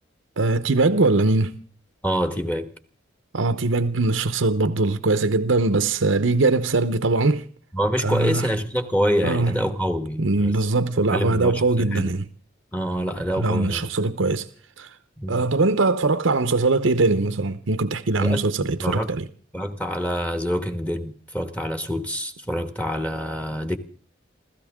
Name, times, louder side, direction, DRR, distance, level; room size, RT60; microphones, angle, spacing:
voice 1, 0.4-1.6 3.3-7.4 8.0-8.5 9.2-9.6 10.2-12.3 13.4-14.5 14.8-14.9 15.3-19.2, right 3 dB, 80° right, 0.9 m, -21 dB
voice 2, 2.0-2.7 7.7-10.5 11.1-12.1 12.7-13.9 15.2-15.5 18.2-18.4 18.8-19.1 19.5-23.8, equal, 5° left, 1.3 m, -26 dB
29.0 x 13.5 x 3.7 m
head